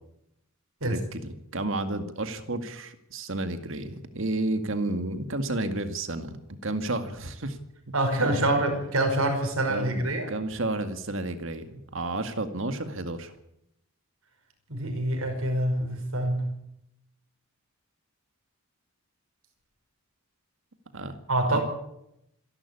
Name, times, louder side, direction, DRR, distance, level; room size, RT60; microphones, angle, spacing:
voice 1, 0.8-7.6 8.2-8.6 9.7-13.3 20.9-21.2 21.5-21.6, right 2 dB, 65° right, 8 dB, 2.0 m, -32 dB
voice 2, 7.9-10.3 14.7-16.5 21.3-21.6, right 1 dB, 80° right, 5 dB, 5.6 m, -26 dB
26.5 x 12.0 x 8.5 m, 0.81 s
head